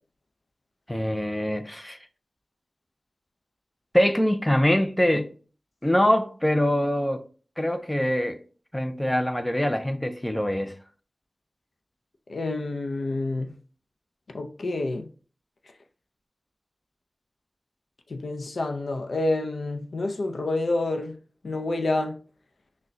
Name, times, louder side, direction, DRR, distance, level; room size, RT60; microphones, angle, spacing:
voice 1, 0.9-2.0 3.9-5.3 5.8-7.2 7.6-8.4 8.7-10.7, equal, 10° left, 0.4 m, -24 dB
voice 2, 12.3-13.5 14.3-15.1 18.1-21.2 21.4-22.2, left 2 dB, 85° left, 0.4 m, -28 dB
5.9 x 2.1 x 2.6 m
wide cardioid pair, 90°, 0 cm